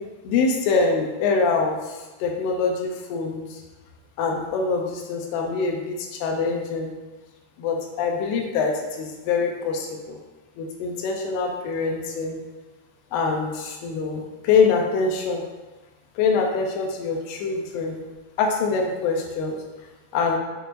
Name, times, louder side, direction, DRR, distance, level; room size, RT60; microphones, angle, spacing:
voice 1, 0.2-3.6 4.2-6.9 7.6-10.2 10.6-12.4 13.1-15.4 16.2-18.0 18.4-19.6 20.1-20.4, left 4 dB, 90° left, 1 dB, 2.7 m, -24 dB
6.6 x 6.0 x 2.5 m, 1.2 s
omnidirectional pair, 4.5 m